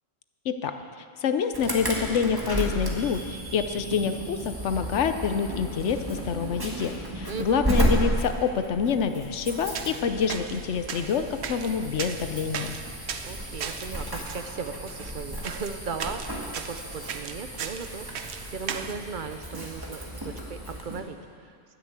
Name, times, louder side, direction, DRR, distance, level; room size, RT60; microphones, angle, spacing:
voice 1, 1.2-12.7, left 6 dB, 80° left, 9 dB, 1.1 m, -27 dB
Insect / Alarm, 1.5-21.0, right 1 dB, 20° right, 1.9 m, -33 dB
voice 2, 7.3-7.7 13.2-21.2 21.4-21.5, right 5 dB, 50° right, 8 dB, 0.9 m, -37 dB
sound 1, 9.5-18.9, right 7 dB, 70° right, 1.0 m, -38 dB
12.0 x 10.0 x 8.3 m, 2.3 s
omnidirectional pair, 1.2 m